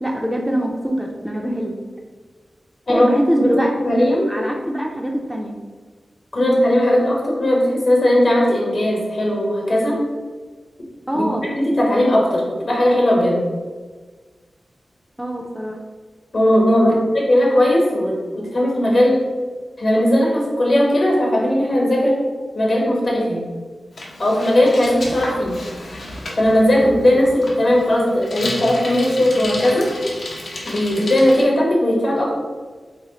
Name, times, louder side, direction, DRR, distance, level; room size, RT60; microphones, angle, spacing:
voice 1, 0.0-1.8 2.9-5.5 11.1-11.5 15.2-15.8 16.9-17.0, equal, 5° right, 0 dB, 0.3 m, -23 dB
voice 2, 3.4-4.3 6.3-10.0 11.1-13.4 16.3-17.0 17.2-19.2 19.8-22.2 22.5-23.5 24.2-25.6 26.4-29.9 30.6-32.3, left 1 dB, 50° left, -1 dB, 0.9 m, -17 dB
Bicycle, 23.9-31.4, left 1 dB, 70° left, 0.7 m, -32 dB
3.0 x 2.4 x 3.8 m, 1.4 s
wide cardioid pair, 115°, 0 cm